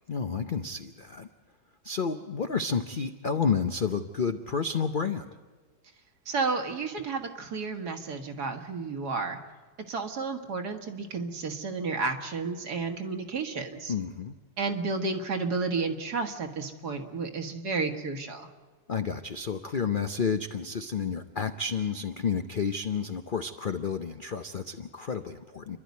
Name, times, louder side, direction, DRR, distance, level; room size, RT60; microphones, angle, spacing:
voice 1, 0.1-1.3 1.8-5.3 13.9-14.3 18.9-25.8, left 5 dB, 75° left, 7 dB, 0.4 m, -30 dB
voice 2, 6.3-9.4 9.9-13.9 14.6-18.5, right 4 dB, 60° right, 5 dB, 2.0 m, -32 dB
29.5 x 12.0 x 9.5 m, 1.4 s
omnidirectional pair, 2.0 m